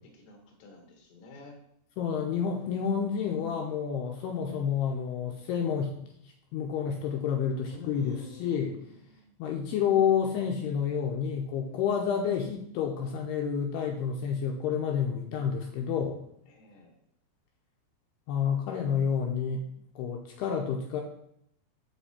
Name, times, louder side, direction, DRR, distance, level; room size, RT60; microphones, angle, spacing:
voice 1, 0.1-1.6 7.7-9.3 16.5-16.9, left 2 dB, 60° left, 2 dB, 2.3 m, -48 dB
voice 2, 2.0-5.9 6.5-8.8 9.4-16.2 18.3-19.7 20.0-21.0, left 7 dB, 80° left, 2 dB, 2.6 m, -29 dB
7.4 x 5.8 x 4.2 m, 0.73 s
omnidirectional pair, 4.9 m